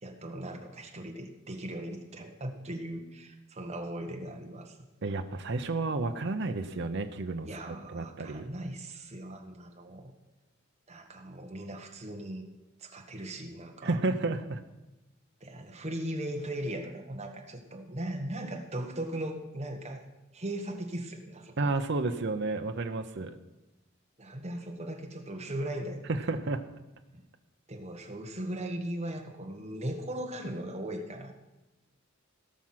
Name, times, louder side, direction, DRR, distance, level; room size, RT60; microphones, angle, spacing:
voice 1, 0.0-4.8 7.4-10.1 10.9-12.5 12.8-14.0 15.4-20.1 20.3-21.7 24.2-26.4 27.1-27.2 27.7-31.3, right 1 dB, 35° right, 3 dB, 1.4 m, -38 dB
voice 2, 5.0-8.5 13.8-14.6 21.6-23.4 26.1-26.6, right 3 dB, 60° right, 7 dB, 0.7 m, -31 dB
17.5 x 6.1 x 5.8 m, 1.0 s
head